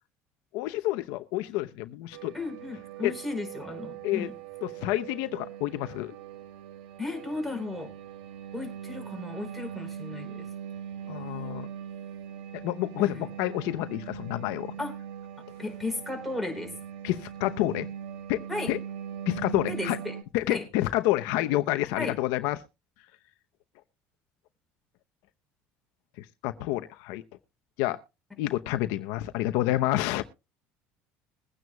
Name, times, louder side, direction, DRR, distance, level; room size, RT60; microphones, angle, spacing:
voice 1, 0.5-2.3 3.0-3.1 4.0-4.3 4.6-6.1 11.1-11.7 12.5-14.7 17.0-17.9 18.3-18.4 18.7-18.8 19.3-20.0 20.3-22.6 26.2-27.2 27.8-28.0 28.4-30.3, left 16 dB, 80° left, 0.8 m, -29 dB
sound 1, 2.1-20.2, right 9 dB, 90° right, 1.2 m, -41 dB
voice 2, 2.3-4.3 7.0-7.9 8.5-10.5 13.0-13.2 14.8-14.9 15.6-16.7 18.5-18.7 19.7-20.1 20.5-20.6 22.0-22.1, left 2 dB, ahead, 4.7 m, -34 dB
22.0 x 9.4 x 2.3 m
cardioid pair, 125°, 5 cm